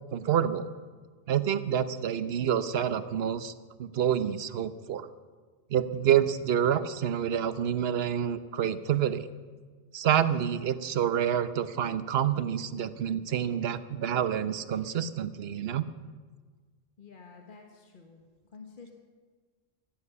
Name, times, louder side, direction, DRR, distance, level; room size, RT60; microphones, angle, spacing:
voice 1, 0.1-0.7 1.3-3.5 3.8-5.1 5.7-9.3 9.9-15.9, right 9 dB, 75° right, 13 dB, 1.0 m, -28 dB
voice 2, 17.0-18.2 18.5-18.9, left 5 dB, 55° left, 2 dB, 1.5 m, -50 dB
15.0 x 13.0 x 6.9 m, 1.5 s
omnidirectional pair, 1.1 m